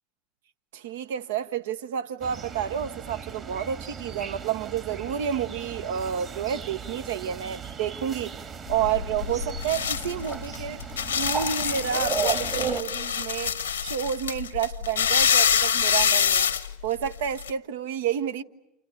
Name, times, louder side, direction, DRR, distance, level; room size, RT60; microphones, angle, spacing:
voice 1, 0.7-8.4 8.7-10.8 11.1-16.5 16.8-18.4, right 9 dB, 75° right, 0.9 m, -30 dB
sound 1, 2.2-12.8, right 6 dB, 40° right, 2.0 m, -36 dB
sound 2, 8.7-17.5, left 8 dB, 90° left, 1.0 m, -26 dB
29.5 x 29.5 x 6.7 m
hypercardioid pair, 80°, 0 cm